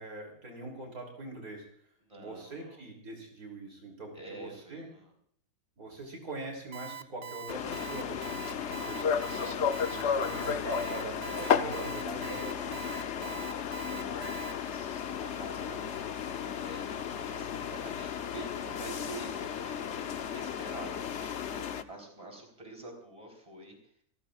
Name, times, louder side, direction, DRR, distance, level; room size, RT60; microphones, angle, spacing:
voice 1, 0.0-1.6 2.2-4.9 5.8-12.8 15.8-15.9, right 2 dB, 70° right, 2 dB, 3.7 m, -43 dB
voice 2, 2.0-2.8 4.1-5.1 11.2-11.4 12.1-15.8 16.0-23.7, right 2 dB, 20° right, 2 dB, 4.3 m, -47 dB
Alarm, 6.7-14.5, right 9 dB, 50° right, 0.9 m, -43 dB
sound 1, 7.5-21.8, left 7 dB, 55° left, 1.0 m, -34 dB
29.5 x 14.5 x 2.5 m, 0.62 s
omnidirectional pair, 1.6 m